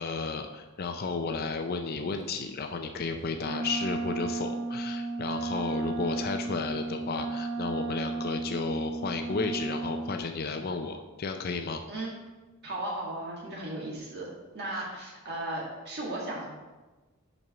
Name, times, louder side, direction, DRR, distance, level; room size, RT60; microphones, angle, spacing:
voice 1, 0.0-11.8 14.7-14.8, left 4 dB, 45° left, 6 dB, 0.4 m, -33 dB
Wind instrument woodwind instrument, 3.4-10.2, right 3 dB, 80° right, 0.6 m, -34 dB
voice 2, 12.6-14.3 14.5-16.5, right 1 dB, 50° right, -3 dB, 1.8 m, -36 dB
5.9 x 5.3 x 5.7 m, 1.2 s
head